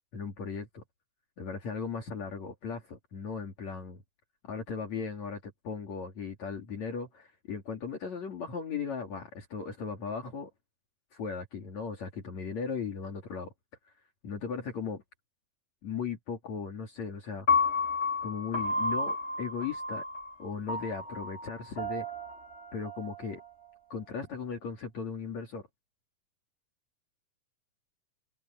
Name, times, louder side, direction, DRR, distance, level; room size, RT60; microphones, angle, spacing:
voice 1, 0.1-0.8 1.4-4.0 4.4-10.5 11.1-13.5 13.9-14.0 14.2-15.0 15.8-17.5 18.2-20.0 20.4-22.1 22.7-23.4 23.9-25.7, left 5 dB, 55° left, 4.1 m, -37 dB
Piano, 17.5-23.7, left 3 dB, 20° left, 4.6 m, -32 dB
omnidirectional pair, 3.8 m